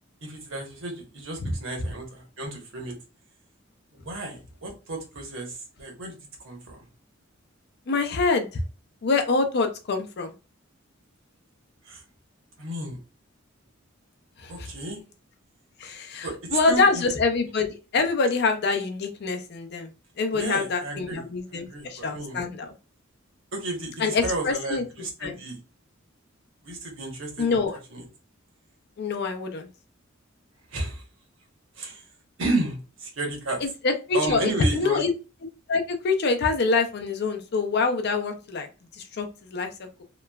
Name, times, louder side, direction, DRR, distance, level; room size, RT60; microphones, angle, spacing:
voice 1, 0.2-3.0 3.9-6.9 11.8-12.0 12.6-13.0 14.5-15.0 16.2-17.1 20.3-21.2 21.5-22.4 23.5-25.6 26.6-27.6 27.9-28.0 30.7-31.0 31.7-32.0 32.4-33.6 34.1-35.0, right 2 dB, 70° right, 0 dB, 1.0 m, -32 dB
voice 2, 7.9-8.6 9.0-10.3 14.4-14.7 15.8-19.9 20.2-22.7 24.0-24.8 25.2-25.4 27.4-27.8 29.0-29.7 33.6-35.1 35.7-38.7 38.9-39.9, left 4 dB, 55° left, 5 dB, 0.5 m, -25 dB
2.9 x 2.2 x 2.2 m, 0.31 s
head